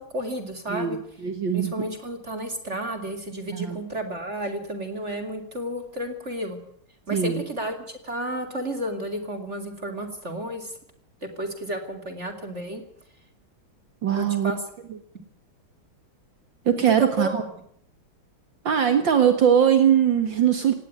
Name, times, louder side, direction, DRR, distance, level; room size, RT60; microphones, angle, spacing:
voice 1, 0.0-1.0 1.5-6.6 7.1-10.8 11.2-12.8 14.1-14.6 17.0-17.5, right 1 dB, 35° right, 7 dB, 2.9 m, -32 dB
voice 2, 0.7-1.8 3.5-3.8 7.1-7.4 14.0-14.5 14.9-15.0 16.7-17.3 18.6-20.7, right 8 dB, 65° right, 8 dB, 2.4 m, -21 dB
18.0 x 18.0 x 9.5 m, 0.67 s
omnidirectional pair, 2.3 m